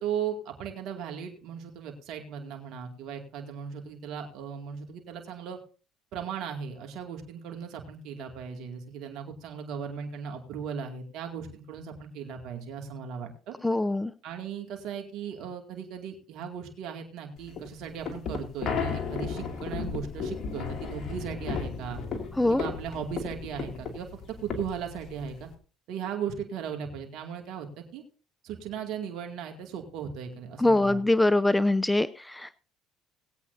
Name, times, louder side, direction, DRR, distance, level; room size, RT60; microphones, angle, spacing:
voice 1, 0.0-5.6 6.1-13.5 14.2-22.0 22.5-25.5 25.9-28.0 28.4-31.0, right 7 dB, 70° right, 4 dB, 2.3 m, -37 dB
voice 2, 13.6-14.1 22.4-22.6 30.6-32.6, left 2 dB, 10° left, 16 dB, 0.5 m, -23 dB
sound 1, 17.4-25.5, left 5 dB, 50° left, 2.6 m, -35 dB
20.0 x 8.4 x 2.7 m, 0.37 s
supercardioid pair, 75°, 0 cm